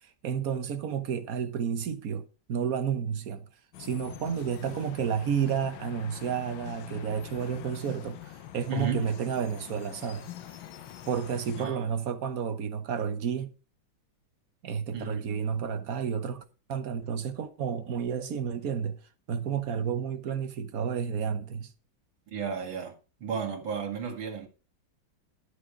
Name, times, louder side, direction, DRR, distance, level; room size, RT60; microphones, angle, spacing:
voice 1, 0.2-3.4 3.8-10.3 11.1-13.5 14.6-16.4 16.7-19.0 19.3-21.7, right 7 dB, 50° right, 1.4 m, -31 dB
sound 1, 3.7-11.7, left 11 dB, 85° left, 1.7 m, -44 dB
voice 2, 8.7-9.1 11.6-11.9 14.9-15.2 22.3-22.9 23.2-24.5, right 5 dB, 85° right, 2.9 m, -33 dB
12.0 x 6.7 x 5.1 m
omnidirectional pair, 2.1 m